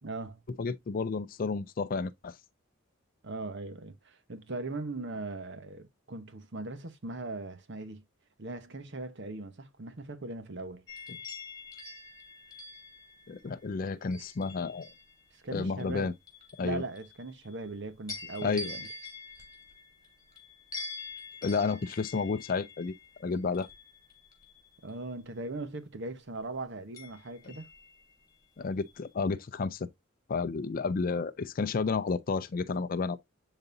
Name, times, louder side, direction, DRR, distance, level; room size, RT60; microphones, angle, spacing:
voice 1, 0.0-0.4 3.2-8.0 8.4-10.8 15.3-16.1 16.6-18.9 24.8-27.7, right 2 dB, 60° right, 1.1 m, -39 dB
voice 2, 0.6-2.3 11.1-11.2 13.3-14.9 15.5-16.1 16.6-16.8 18.4-18.8 21.4-22.9 23.2-23.7 28.6-29.9 30.3-33.2, left 4 dB, 45° left, 0.4 m, -31 dB
sound 1, 10.9-15.2 15.8-17.7 18.1-25.0 26.9-28.4 28.8-29.1, left 3 dB, 20° left, 3.0 m, -46 dB
10.5 x 4.0 x 2.6 m
head